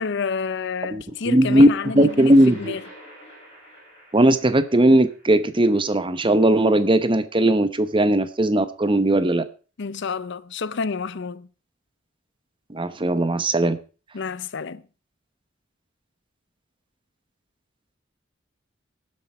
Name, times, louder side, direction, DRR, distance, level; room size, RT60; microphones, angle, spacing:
voice 1, 0.0-2.8 9.8-11.5 14.1-14.8, left 5 dB, 60° left, 0.6 m, -29 dB
voice 2, 0.9-1.7 1.9-2.8 4.1-9.4 12.7-13.8, right 1 dB, 25° right, 1.0 m, -18 dB
sound 1, 1.1-6.6, equal, 30° left, 6.4 m, -46 dB
18.5 x 7.8 x 4.4 m
head